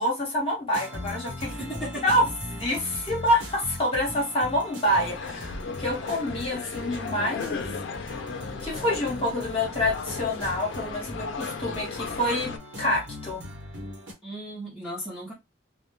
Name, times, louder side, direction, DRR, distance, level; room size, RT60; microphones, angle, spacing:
voice 1, 0.0-1.5 2.0-7.7 8.0-8.2 8.6-12.5 12.8-13.4, left 1 dB, 30° left, 0.9 m, -27 dB
sound 1, 0.7-14.1, left 1 dB, 75° right, 1.0 m, -39 dB
voice 2, 1.5-2.1 14.2-15.3, right 1 dB, ahead, 0.6 m, -36 dB
sound 2, 4.8-12.6, left 5 dB, 75° left, 0.3 m, -36 dB
2.2 x 2.1 x 3.0 m
head